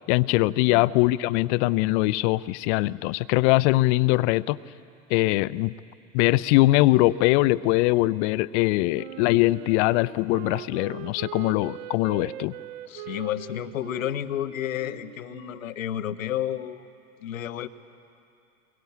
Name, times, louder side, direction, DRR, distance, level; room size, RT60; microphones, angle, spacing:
voice 1, 0.1-4.6 5.1-5.8 6.1-12.5, left 19 dB, 60° left, 18 dB, 0.6 m, -22 dB
Wind instrument woodwind instrument, 8.9-15.7, right 13 dB, 70° right, 0.9 m, -41 dB
voice 2, 12.9-16.9 17.2-17.7, left 11 dB, 85° left, 12 dB, 1.0 m, -31 dB
23.0 x 22.5 x 8.4 m, 2.6 s
hypercardioid pair, 85°, 39 cm